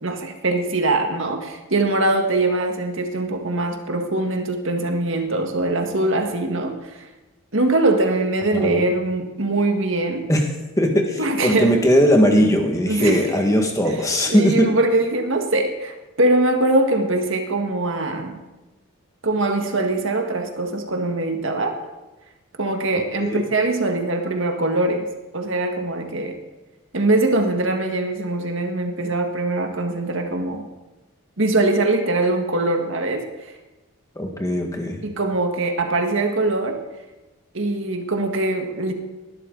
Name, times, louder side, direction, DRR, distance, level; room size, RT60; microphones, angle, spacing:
voice 1, 0.0-7.0 7.5-10.3 11.2-11.8 12.8-13.3 13.9-14.0 14.3-18.4 19.2-21.8 22.6-25.1 25.3-26.4 26.9-30.7 31.4-33.5 35.0-36.8 37.5-38.9, right 2 dB, 60° right, 4 dB, 1.7 m, -22 dB
voice 2, 10.8-14.7 23.2-23.4 34.1-35.0, equal, 15° left, 3 dB, 1.7 m, -19 dB
19.0 x 12.0 x 4.0 m, 1.1 s
head